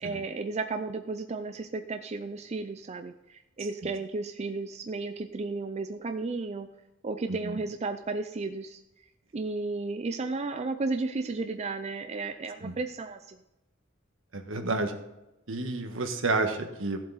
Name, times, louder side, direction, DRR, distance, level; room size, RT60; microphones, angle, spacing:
voice 1, 0.0-6.7 7.0-8.8 9.3-13.4, right 3 dB, 35° right, 7 dB, 0.5 m, -33 dB
voice 2, 7.3-7.6 12.6-12.7 14.3-15.0 15.5-17.0, right 3 dB, 70° right, 6 dB, 1.4 m, -30 dB
15.0 x 7.6 x 4.0 m, 0.94 s
head